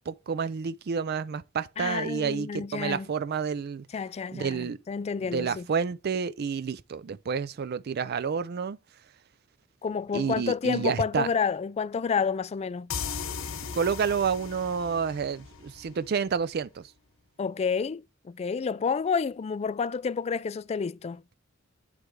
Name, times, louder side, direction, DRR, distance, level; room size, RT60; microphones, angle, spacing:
voice 1, 0.1-3.9 4.3-4.8 5.2-8.8 10.1-11.3 13.7-16.9, right 6 dB, 55° right, 0.4 m, -29 dB
voice 2, 1.8-3.1 3.9-5.6 9.8-12.9 17.4-21.2, left 5 dB, 30° left, 0.3 m, -29 dB
sound 1, 12.9-16.4, left 6 dB, 80° left, 0.9 m, -37 dB
9.7 x 3.3 x 4.7 m
head